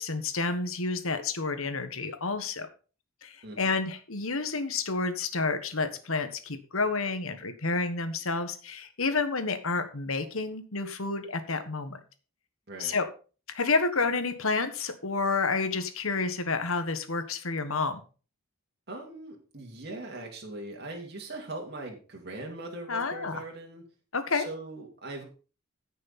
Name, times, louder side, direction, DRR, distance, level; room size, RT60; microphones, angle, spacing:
voice 1, 0.0-2.7 3.2-12.0 12.8-13.1 13.5-18.0 22.9-23.4 24.1-24.5, left 4 dB, 70° left, 9 dB, 1.5 m, -29 dB
voice 2, 18.9-23.8 24.3-25.2, right 2 dB, 50° right, 0 dB, 2.6 m, -40 dB
15.0 x 6.5 x 4.3 m, 0.36 s
head